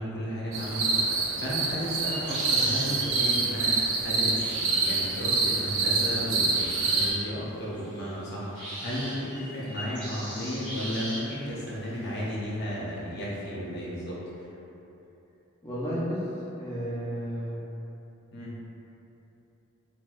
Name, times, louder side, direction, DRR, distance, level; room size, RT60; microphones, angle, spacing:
voice 1, 0.0-14.2 18.3-18.6, equal, 50° left, -6 dB, 0.6 m, -34 dB
sound 1, 0.5-7.1, right 3 dB, 75° right, 0.4 m, -26 dB
sound 2, 2.0-3.8 4.4-7.2 7.7-8.2 8.5-11.6, equal, 20° right, 0.9 m, -38 dB
voice 2, 15.6-16.3 16.6-17.6, equal, 15° left, -11 dB, 0.4 m, -32 dB
4.1 x 2.2 x 2.4 m, 2.9 s
head